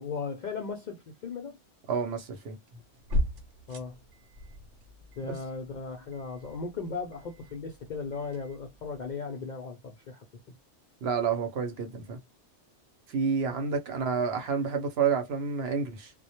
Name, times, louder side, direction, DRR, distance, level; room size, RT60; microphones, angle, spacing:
voice 1, 0.0-1.6 3.7-4.0 5.2-10.2 13.5-13.7, left 4 dB, 60° left, 0.5 m, -37 dB
voice 2, 1.9-2.6 5.3-5.4 11.0-12.2 13.1-16.1, right 6 dB, 65° right, 0.8 m, -29 dB
sound 1, 2.7-9.1, equal, 85° right, 1.0 m, -38 dB
2.1 x 2.0 x 2.8 m
omnidirectional pair, 1.2 m